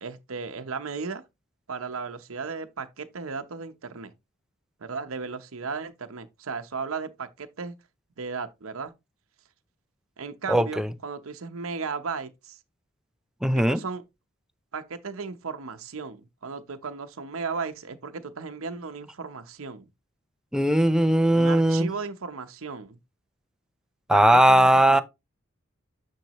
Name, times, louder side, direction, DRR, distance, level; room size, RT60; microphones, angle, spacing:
voice 1, 0.0-1.2 1.7-4.1 4.8-7.7 8.2-8.9 10.2-12.6 13.7-14.0 14.7-19.9 21.3-23.0 24.1-25.0, right 5 dB, 75° right, 0.8 m, -35 dB
voice 2, 10.5-10.9 13.4-13.8 20.5-21.9 24.1-25.0, right 1 dB, 5° right, 0.5 m, -19 dB
9.2 x 4.6 x 3.0 m
head